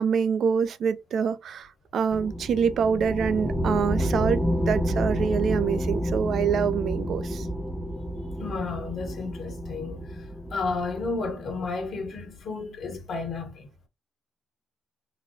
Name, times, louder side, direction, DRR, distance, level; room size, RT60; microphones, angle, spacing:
voice 1, 0.0-7.5, right 6 dB, 65° right, 0.5 m, -26 dB
sound 1, 2.1-12.1, equal, 5° left, 0.5 m, -30 dB
voice 2, 8.4-10.1 10.5-13.7, left 4 dB, 60° left, 1.4 m, -32 dB
3.9 x 2.2 x 2.7 m
cardioid pair, 95°, 0 cm